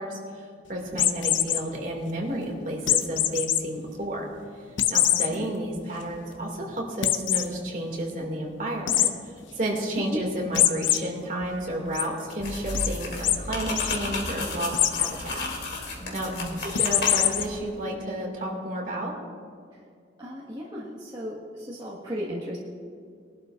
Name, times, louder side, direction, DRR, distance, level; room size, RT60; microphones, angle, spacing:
voice 1, 0.0-4.3 4.9-9.1 9.6-15.4 16.1-16.3 16.6-19.1, right 1 dB, 45° right, -1 dB, 2.4 m, -31 dB
sound 1, 0.9-1.6 2.9-3.6 4.0-4.1 4.8-5.3 5.8-5.9 6.1-6.2 7.0-7.5 8.9-9.1 10.5-11.0 11.4-12.0 12.7-12.9 13.2-13.4 13.7-14.0 14.7-15.1 16.7-17.4, left 11 dB, 85° left, 0.6 m, -23 dB
sound 2, 12.4-17.5, left 2 dB, 60° left, 2.7 m, -33 dB
voice 2, 16.0-16.6 19.7-19.8 20.2-22.6, equal, 20° right, -7 dB, 1.6 m, -35 dB
21.5 x 12.0 x 2.6 m, 2.2 s
head